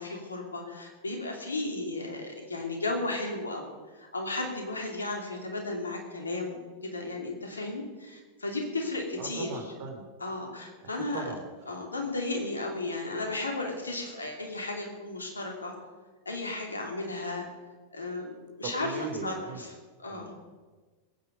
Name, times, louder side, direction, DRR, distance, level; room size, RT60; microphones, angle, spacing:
voice 1, 0.0-9.7 10.2-11.3 11.7-15.7 16.2-17.5 17.9-20.3, left 2 dB, 75° left, 2 dB, 2.9 m, -34 dB
voice 2, 9.2-10.0 11.1-11.4 18.6-19.6 20.1-20.5, right 4 dB, 45° right, 4 dB, 2.9 m, -38 dB
21.5 x 9.4 x 5.4 m, 1.3 s
figure-of-eight pair, 90°, 0 cm